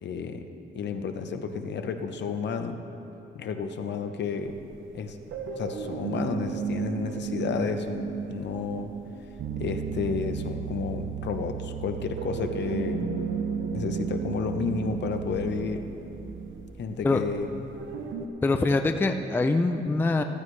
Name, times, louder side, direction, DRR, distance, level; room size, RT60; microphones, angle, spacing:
voice 1, 0.0-0.4 0.7-2.8 3.3-4.5 4.9-5.2 5.6-8.9 9.6-13.1 13.7-15.8 16.8-17.6, left 5 dB, 65° left, 7 dB, 0.8 m, -31 dB
sound 1, 4.4-18.3, right 5 dB, 85° right, 0.9 m, -35 dB
Bass guitar, 9.4-15.6, right 10 dB, 45° right, 0.5 m, -37 dB
voice 2, 18.4-20.2, left 3 dB, 10° left, 6 dB, 0.4 m, -24 dB
15.0 x 14.5 x 3.2 m, 2.9 s
wide cardioid pair, 160°, 20 cm